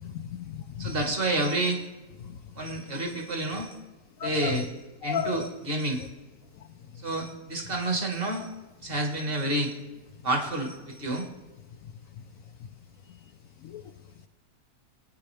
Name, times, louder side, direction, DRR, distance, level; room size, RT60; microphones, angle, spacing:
voice 1, 0.0-0.9 4.2-4.6 5.0-5.5 13.6-13.8, left 8 dB, 70° left, 6 dB, 0.9 m, -33 dB
voice 2, 0.8-1.8 2.5-3.8 4.2-4.7 5.0-6.1 7.0-8.5 8.8-9.7 10.2-11.3, right 2 dB, 35° right, 3 dB, 1.7 m, -29 dB
22.0 x 9.4 x 3.3 m, 1.2 s
omnidirectional pair, 1.7 m